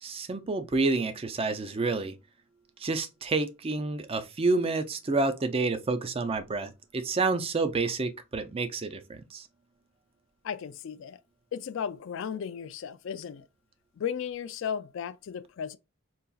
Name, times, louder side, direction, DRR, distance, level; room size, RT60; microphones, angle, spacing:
voice 1, 0.0-2.2 2.8-9.5, right 3 dB, 25° right, 0.4 m, -29 dB
voice 2, 10.4-11.2 11.5-13.5 14.0-15.8, left 7 dB, 60° left, 0.3 m, -35 dB
4.0 x 2.3 x 2.3 m
head